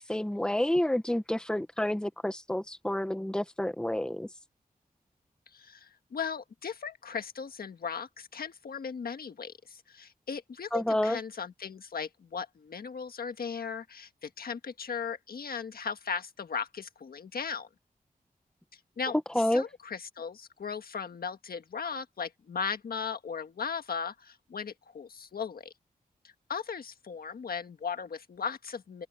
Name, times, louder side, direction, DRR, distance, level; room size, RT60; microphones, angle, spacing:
voice 1, 0.0-4.3 10.7-11.2 19.3-19.6, left 1 dB, 5° left, 1.1 m, -29 dB
voice 2, 5.5-17.7 18.7-25.7 26.2-29.1, left 6 dB, 80° left, 1.5 m, -37 dB
open air
wide cardioid pair, 115°, 15 cm